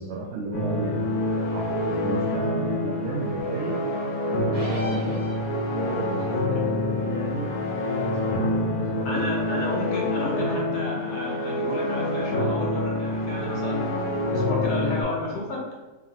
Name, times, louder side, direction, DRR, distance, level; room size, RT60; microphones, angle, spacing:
voice 1, 0.0-3.8 4.3-5.2 5.7-9.5, right 3 dB, 65° right, -1 dB, 0.7 m, -34 dB
sound 1, 0.5-15.0, left 1 dB, 90° left, 1.2 m, -27 dB
sound 2, 4.5-5.9, left 2 dB, 30° right, 1.6 m, -36 dB
voice 2, 9.0-13.9 14.3-15.6, left 2 dB, 55° left, -3 dB, 1.0 m, -31 dB
3.5 x 2.8 x 3.8 m, 1.2 s
omnidirectional pair, 1.5 m